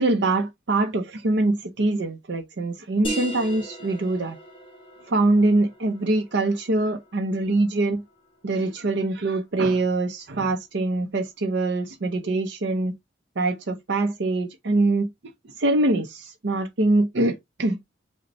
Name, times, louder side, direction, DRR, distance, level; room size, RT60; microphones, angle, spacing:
voice 1, 0.0-4.4 5.1-8.0 8.4-12.9 13.4-15.1 15.6-17.8, right 2 dB, 65° right, 0.6 m, -23 dB
sound 1, 3.0-8.4, right 1 dB, 25° left, 1.2 m, -38 dB
5.1 x 2.2 x 4.1 m
head